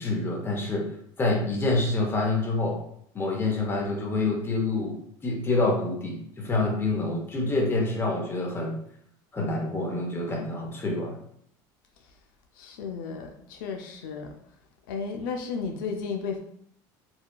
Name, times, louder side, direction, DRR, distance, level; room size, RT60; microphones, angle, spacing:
voice 1, 0.0-2.8 3.1-5.0 5.2-8.8 9.3-11.2, left 2 dB, 20° left, 0 dB, 0.7 m, -27 dB
voice 2, 12.6-14.3 14.9-16.4, left 5 dB, 90° left, 3 dB, 0.4 m, -33 dB
2.7 x 2.2 x 2.2 m, 0.68 s
supercardioid pair, 110°, 11 cm